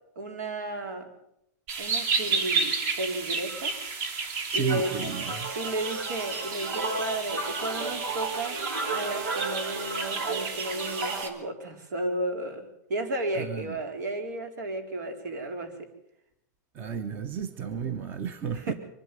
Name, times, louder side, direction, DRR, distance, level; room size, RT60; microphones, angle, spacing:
voice 1, 0.2-1.1 1.8-3.8 4.5-5.0 5.5-8.6 8.9-15.9 18.5-18.7, right 2 dB, 70° right, 4.3 m, -33 dB
sound 1, 1.7-11.3, right 4 dB, 45° right, 2.9 m, -32 dB
voice 2, 4.5-5.5 13.4-13.8 16.7-18.7, right 7 dB, 20° right, 0.9 m, -33 dB
sound 2, 4.7-11.2, right 3 dB, 85° right, 5.4 m, -34 dB
24.0 x 11.5 x 9.2 m
supercardioid pair, 170°, 10 cm